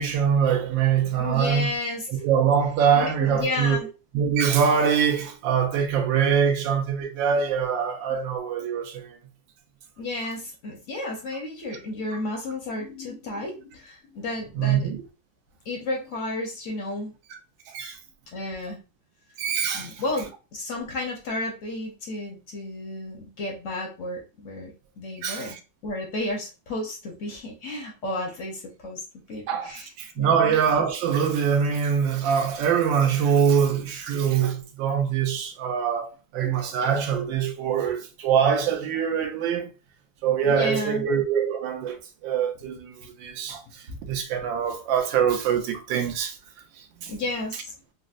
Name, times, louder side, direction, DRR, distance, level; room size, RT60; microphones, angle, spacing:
voice 1, 0.0-1.7 2.2-3.8 4.1-9.2 14.6-15.0 17.7-18.0 19.4-19.9 25.2-25.6 29.5-39.7 40.2-42.0 42.2-43.6 44.1-46.3 47.0-47.1, right 7 dB, 80° right, 1.3 m, -23 dB
voice 2, 1.2-2.1 3.0-3.9 10.0-14.9 15.7-17.1 18.3-18.8 19.7-24.7 25.0-25.6 25.8-29.0 29.3-29.9 30.2-30.6 36.4-36.6 40.5-41.1 47.1-47.7, left 2 dB, 60° left, 0.8 m, -32 dB
4.0 x 2.0 x 2.4 m
omnidirectional pair, 2.1 m